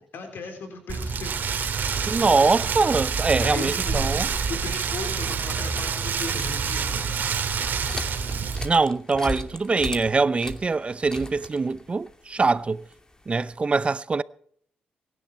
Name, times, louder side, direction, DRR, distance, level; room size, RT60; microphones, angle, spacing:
voice 1, 0.1-1.4 2.1-2.4 3.4-7.6, left 4 dB, 70° left, 3.9 m, -37 dB
Rain, 0.9-8.7, right 6 dB, 60° right, 2.5 m, -27 dB
voice 2, 2.1-4.3 8.6-12.8 13.3-14.2, right 4 dB, 35° right, 0.6 m, -23 dB
sound 1, 7.1-13.5, left 1 dB, 20° left, 2.5 m, -39 dB
23.5 x 11.0 x 4.4 m
cardioid pair, 65°, 4 cm